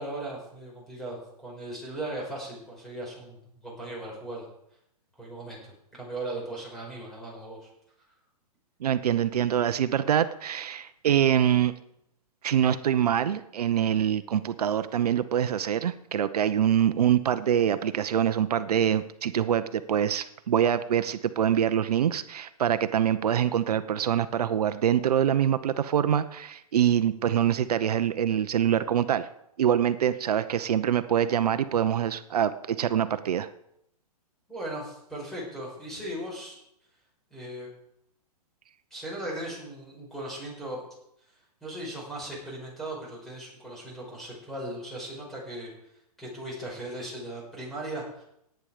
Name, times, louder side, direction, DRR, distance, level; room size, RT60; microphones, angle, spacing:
voice 1, 0.0-4.5 5.2-7.7 34.5-36.6 37.3-37.7 38.9-40.8 41.6-45.7 46.2-48.2, right 1 dB, ahead, -4 dB, 5.5 m, -38 dB
voice 2, 8.8-11.7 12.4-29.3 29.6-33.5, right 9 dB, 75° right, 12 dB, 0.8 m, -25 dB
17.5 x 9.3 x 5.0 m, 0.77 s
hypercardioid pair, 155°, 20 cm